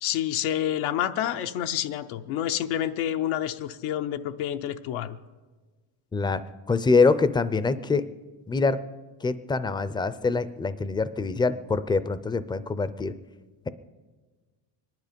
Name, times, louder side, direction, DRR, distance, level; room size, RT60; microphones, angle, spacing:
voice 1, 0.0-5.1, left 11 dB, 85° left, 8 dB, 0.7 m, -28 dB
voice 2, 6.1-6.4 6.7-8.0 8.5-8.8 9.2-13.1, left 4 dB, 10° left, 15 dB, 0.4 m, -24 dB
23.5 x 11.0 x 5.2 m, 1.4 s
cardioid pair, 115°, 47 cm